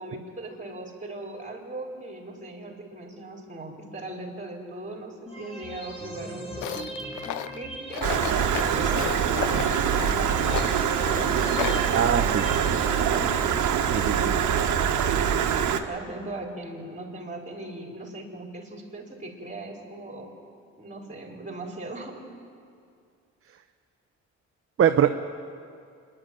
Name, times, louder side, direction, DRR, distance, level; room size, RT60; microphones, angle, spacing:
voice 1, 0.0-6.9 7.5-9.6 9.9-15.0 15.3-20.3 20.8-22.3, right 2 dB, 25° right, 0 dB, 4.7 m, -39 dB
sound 1, 5.3-13.3, right 1 dB, 20° left, 3.6 m, -39 dB
Tools, 6.6-11.9, left 14 dB, 75° left, 0.6 m, -34 dB
Stream, 8.0-15.8, right 8 dB, 70° right, 1.4 m, -24 dB
voice 2, 11.9-12.4 13.9-14.3 24.8-25.1, right 9 dB, 45° right, 7 dB, 0.8 m, -22 dB
26.5 x 11.5 x 9.2 m, 2.4 s
cardioid pair, 90°, 30 cm